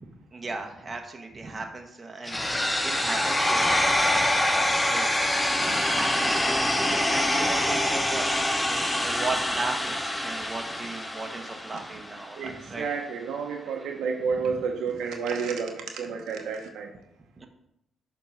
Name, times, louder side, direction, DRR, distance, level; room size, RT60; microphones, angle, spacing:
voice 1, 0.0-2.4 2.8-4.3 4.9-5.1 5.6-8.4 8.7-12.9 13.5-14.0 14.4-14.5 17.4-17.5, right 3 dB, 25° right, 3 dB, 1.1 m, -36 dB
sound 1, 2.3-12.2, left 1 dB, 10° left, 0.7 m, -25 dB
voice 2, 12.4-16.9, right 5 dB, 80° right, 3 dB, 0.9 m, -30 dB
6.8 x 3.6 x 5.8 m, 0.80 s
cardioid pair, 90°, 0 cm